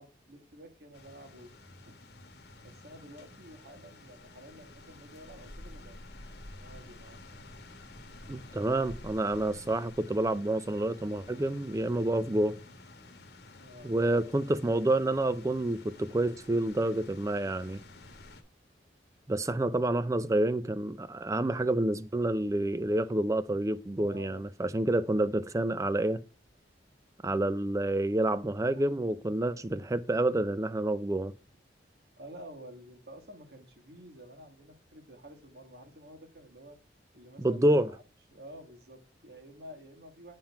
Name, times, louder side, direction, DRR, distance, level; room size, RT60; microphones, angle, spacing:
voice 1, 0.0-1.5 1.9-2.0 2.6-6.0 6.6-7.2 13.6-14.2 24.0-24.4 28.6-28.9 32.2-36.8 37.1-38.0 38.3-40.4, equal, 60° right, 1.6 m, -50 dB
sound 1, 0.9-18.4, left 2 dB, 65° left, 1.1 m, -50 dB
voice 2, 8.3-12.6 13.8-17.8 19.3-26.2 27.2-31.3 37.4-37.9, right 1 dB, 20° right, 0.4 m, -28 dB
8.8 x 3.8 x 5.7 m
head